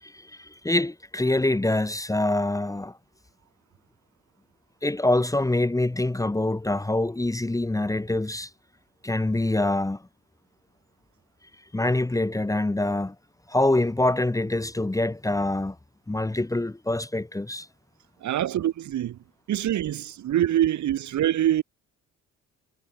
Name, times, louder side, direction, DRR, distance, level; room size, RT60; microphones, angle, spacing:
voice 1, 0.0-3.0 4.8-8.5 9.0-10.0 11.7-13.1 13.5-15.8 16.1-17.7, left 2 dB, 10° left, 1.2 m, -25 dB
voice 2, 18.2-19.2 19.5-21.6, right 12 dB, 70° right, 2.6 m, -24 dB
cardioid pair, 90°, 30 cm